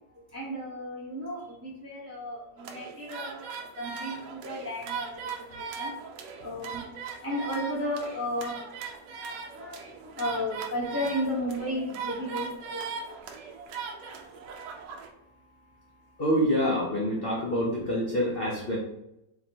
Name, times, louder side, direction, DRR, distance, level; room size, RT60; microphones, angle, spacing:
voice 1, 0.3-3.5 3.8-5.2 5.5-5.9 6.4-6.8 7.2-8.5 9.6-9.8 10.2-12.9, equal, 15° right, -5 dB, 0.5 m, -33 dB
sound 1, 2.6-15.1, right 5 dB, 80° right, 1.2 m, -39 dB
voice 2, 16.2-18.8, equal, 70° left, -3 dB, 0.5 m, -26 dB
4.0 x 2.9 x 2.8 m, 0.83 s
omnidirectional pair, 1.9 m